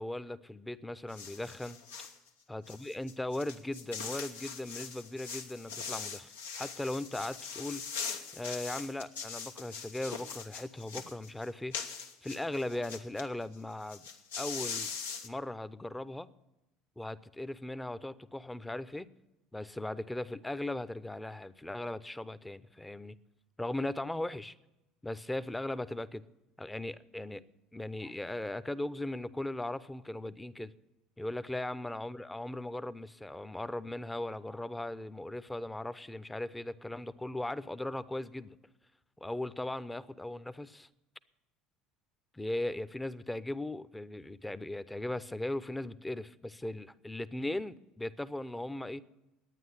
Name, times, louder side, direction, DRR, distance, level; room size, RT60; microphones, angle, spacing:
voice 1, 0.0-1.8 2.5-6.3 6.6-7.8 8.3-11.8 12.2-14.0 14.4-14.9 15.2-16.3 17.0-19.1 19.5-23.2 23.6-24.5 25.0-26.2 26.6-27.4 27.7-30.7 31.2-38.6 39.2-40.9 42.3-49.0, left 1 dB, 10° left, 0.7 m, -38 dB
sound 1, 1.1-2.2 2.7-13.2 13.5-13.6 13.8-15.3, left 6 dB, 90° left, 1.1 m, -41 dB
11.0 x 9.2 x 9.9 m
hypercardioid pair, 75°, 0 cm